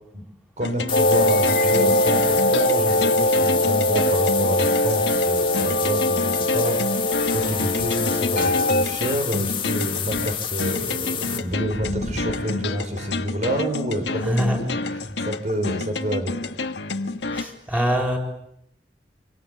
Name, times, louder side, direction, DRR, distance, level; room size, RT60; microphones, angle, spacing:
sound 1, 0.6-17.4, left 3 dB, 85° left, 1.7 m, -30 dB
voice 1, 0.6-14.6 15.2-16.4, equal, 45° right, 7 dB, 5.9 m, -28 dB
sound 2, 0.9-8.9, left 1 dB, 60° left, 2.2 m, -21 dB
sound 3, 0.9-11.4, left 9 dB, 30° left, 2.0 m, -29 dB
voice 2, 11.9-12.2 14.2-14.6 15.0-15.1 17.3-18.2, equal, 10° right, 2 dB, 6.7 m, -24 dB
26.5 x 25.5 x 8.8 m, 0.75 s
head